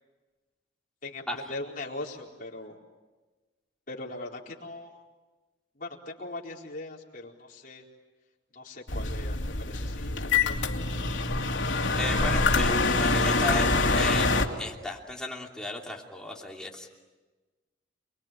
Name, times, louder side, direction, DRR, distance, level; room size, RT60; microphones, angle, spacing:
voice 1, 1.0-2.8 3.9-5.0 5.8-7.8 8.5-10.9, left 2 dB, 45° left, -2 dB, 4.4 m, -40 dB
sound 1, 8.9-14.4, left 3 dB, 85° left, 2.6 m, -25 dB
voice 2, 11.9-14.3 14.6-16.9, left 2 dB, 5° left, -1 dB, 3.1 m, -35 dB
29.0 x 22.0 x 9.0 m, 1.2 s
head